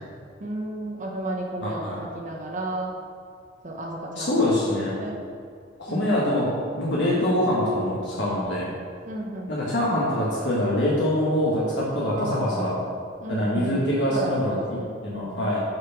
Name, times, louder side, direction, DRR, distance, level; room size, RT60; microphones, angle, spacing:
voice 1, 0.4-3.0 3.6-4.5 5.0-5.2 5.9-6.3 9.0-9.5 12.0-12.6 12.9-13.0 13.2-15.5, right 1 dB, 40° right, -1 dB, 1.0 m, -33 dB
voice 2, 1.6-2.0 4.2-4.9 5.8-6.5 6.7-8.7 9.5-12.7 13.3-15.6, left 1 dB, 65° left, -6 dB, 1.6 m, -24 dB
7.9 x 5.8 x 5.9 m, 2.3 s
head